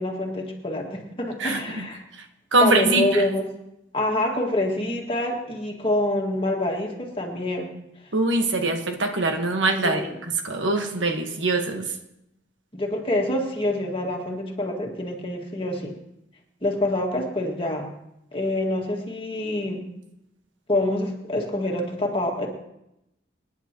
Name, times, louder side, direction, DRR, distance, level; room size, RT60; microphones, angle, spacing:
voice 1, 0.0-2.0 2.6-3.5 3.9-7.7 9.8-10.2 12.7-16.0 16.6-17.9 18.3-19.9 20.7-22.5, left 1 dB, 30° left, 1 dB, 1.9 m, -26 dB
voice 2, 1.4-1.9 2.5-3.2 8.1-10.0 10.4-11.9, right 2 dB, 80° right, 4 dB, 1.4 m, -23 dB
25.5 x 10.0 x 3.0 m, 0.86 s
head